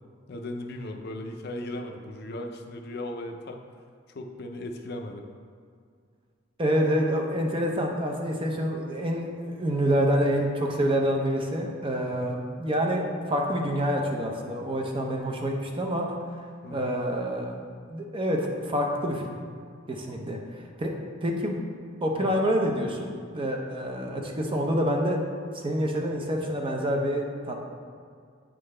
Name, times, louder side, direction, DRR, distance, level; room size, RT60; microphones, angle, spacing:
voice 1, 0.3-3.6 4.1-5.2 12.0-12.4 16.6-17.0 20.1-20.3 22.1-22.3, left 1 dB, 55° left, 4 dB, 0.5 m, -37 dB
voice 2, 6.6-16.2 16.7-17.6 17.9-19.3 19.9-20.9 21.2-21.6 22.0-25.2 25.5-27.6, equal, 25° right, 1 dB, 0.6 m, -27 dB
8.6 x 3.8 x 3.3 m, 2.2 s
head